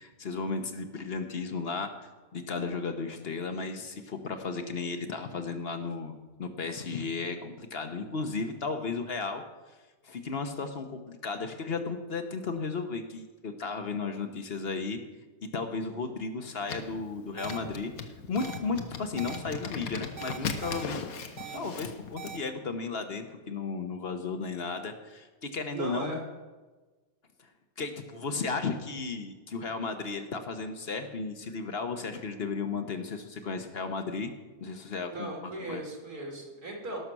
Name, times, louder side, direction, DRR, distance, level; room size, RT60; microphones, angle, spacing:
voice 1, 0.0-1.9 2.3-9.4 10.0-15.0 15.4-21.0 21.5-26.2 27.8-34.3 34.6-35.8, left 4 dB, 45° left, 7 dB, 1.1 m, -34 dB
sound 1, 16.7-22.4, left 5 dB, 70° left, 1.5 m, -38 dB
voice 2, 17.3-17.7 21.4-21.7 25.7-26.2 35.1-37.0, right 2 dB, 80° right, 0 dB, 3.3 m, -38 dB
sound 2, 17.4-17.6 18.4-18.6 19.2-19.4 20.2-20.8 21.4-21.6 22.2-22.4, right 8 dB, 55° right, 1.2 m, -41 dB
18.0 x 6.5 x 6.1 m, 1.2 s
omnidirectional pair, 1.6 m